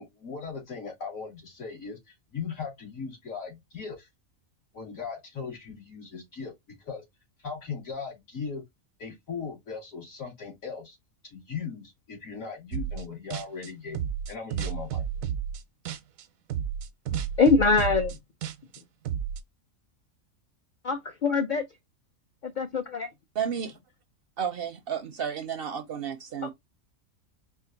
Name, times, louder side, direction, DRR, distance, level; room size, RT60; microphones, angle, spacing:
voice 1, 0.0-4.1 4.7-6.5 6.8-7.0 7.4-8.6 9.0-11.0 11.2-15.0, left 5 dB, 75° left, 2.7 m, -38 dB
sound 1, 12.7-13.0 13.3-16.2 16.5-19.4, right 9 dB, 85° right, 1.1 m, -32 dB
voice 2, 17.4-18.2 20.8-21.6 22.4-23.1 26.4-26.5, left 4 dB, 55° left, 0.5 m, -23 dB
voice 3, 23.4-23.7 24.4-26.5, right 8 dB, 60° right, 0.6 m, -32 dB
4.4 x 2.4 x 3.8 m
omnidirectional pair, 1.4 m